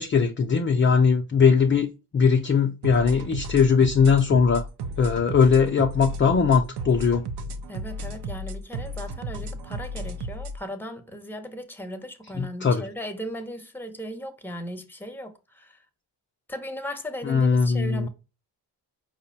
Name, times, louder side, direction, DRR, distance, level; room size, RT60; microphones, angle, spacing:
voice 1, 0.0-4.7 5.0-7.3 12.4-12.8 17.3-18.1, left 5 dB, 25° left, 0.5 m, -20 dB
sound 1, 2.8-10.6, right 1 dB, 55° right, 0.7 m, -34 dB
voice 2, 7.7-15.8 16.5-18.1, equal, 5° left, 0.8 m, -37 dB
4.8 x 2.1 x 4.0 m
supercardioid pair, 60°, 47 cm